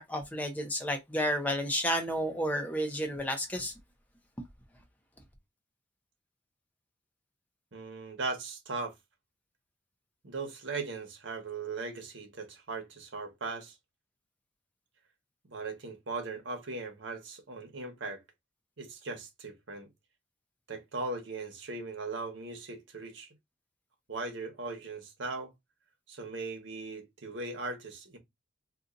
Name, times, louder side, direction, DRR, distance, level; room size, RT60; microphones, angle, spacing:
voice 1, 0.0-3.7, equal, 10° left, 0.5 m, -31 dB
voice 2, 7.7-8.9 10.2-13.7 15.5-18.2 18.8-19.9 20.7-23.3 24.1-25.5 26.1-28.2, right 3 dB, 70° right, 1.1 m, -38 dB
2.6 x 2.4 x 3.8 m
head